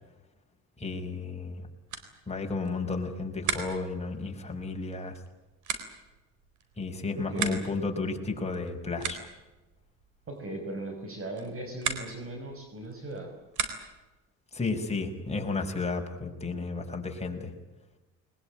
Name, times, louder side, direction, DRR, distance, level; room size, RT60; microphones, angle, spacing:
voice 1, 0.8-1.6 2.3-5.2 6.8-9.3 14.5-17.5, left 3 dB, 20° left, 2 dB, 5.5 m, -33 dB
sound 1, 1.3-14.2, right 7 dB, 75° right, 4.0 m, -40 dB
voice 2, 7.2-7.6 10.3-13.3, right 2 dB, 45° right, 3 dB, 5.8 m, -38 dB
22.0 x 21.5 x 9.0 m, 1.1 s
cardioid pair, 90°, 30 cm